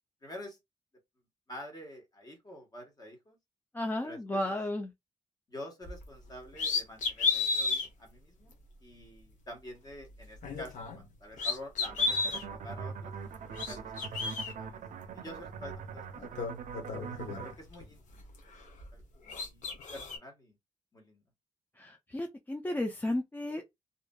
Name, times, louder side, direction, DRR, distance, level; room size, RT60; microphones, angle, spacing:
voice 1, 0.2-0.6 1.5-3.4 4.0-4.6 5.5-8.5 8.8-13.1 13.7-14.8 15.1-16.4 17.4-18.3 18.9-20.5 20.9-21.2, left 1 dB, 30° left, 1.3 m, -48 dB
voice 2, 3.7-4.9 21.8-23.6, left 1 dB, 15° left, 0.4 m, -33 dB
sound 1, 5.8-6.0 6.5-7.9 8.5-8.6 10.3-11.1 11.3-12.4 13.3-14.5 15.7-15.8 16.2-17.8 18.2-19.0 19.3-20.2, left 4 dB, 85° left, 0.8 m, -33 dB
sound 2, 11.9-17.5, right 6 dB, 90° right, 0.5 m, -42 dB
2.6 x 2.4 x 2.2 m
cardioid pair, 95°, 13 cm